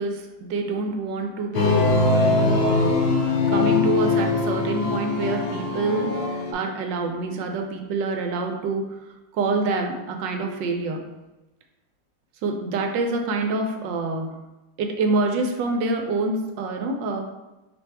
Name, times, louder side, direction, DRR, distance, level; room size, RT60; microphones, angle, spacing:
voice 1, 0.0-6.2 6.5-9.0 9.3-11.1 12.4-14.3 14.8-17.2, right 3 dB, 85° right, 4 dB, 1.3 m, -26 dB
sound 1, 1.5-6.5, left 3 dB, 90° left, 1.4 m, -22 dB
4.4 x 2.6 x 4.4 m, 1.0 s
omnidirectional pair, 2.0 m